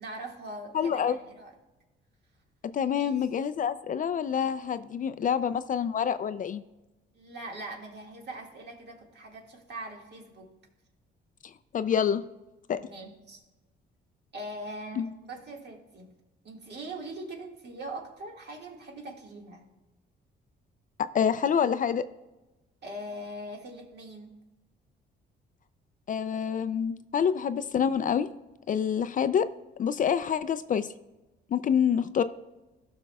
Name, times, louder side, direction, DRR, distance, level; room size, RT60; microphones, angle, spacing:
voice 1, 0.0-1.5 2.8-3.1 7.2-10.5 12.8-13.4 14.3-16.1 16.4-19.6 22.8-24.3, right 1 dB, 60° right, 0 dB, 1.9 m, -41 dB
voice 2, 0.7-1.2 2.6-6.6 11.7-12.3 12.7-12.8 15.0-15.1 21.1-22.1 26.1-28.3 28.7-29.5 29.8-30.9 31.5-32.2, left 8 dB, 45° left, 13 dB, 0.4 m, -27 dB
16.0 x 5.9 x 2.3 m, 1.1 s
cardioid pair, 90°, 20 cm